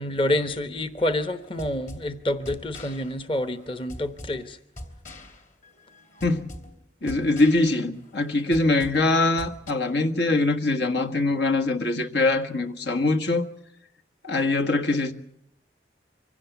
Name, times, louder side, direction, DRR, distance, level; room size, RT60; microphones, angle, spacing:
voice 1, 0.0-4.6, left 1 dB, 30° left, 0.9 m, -28 dB
sound 1, 1.4-9.7, left 1 dB, 45° left, 2.9 m, -44 dB
voice 2, 7.0-13.4 14.2-15.1, left 2 dB, 75° left, 1.5 m, -23 dB
24.5 x 16.5 x 8.1 m
head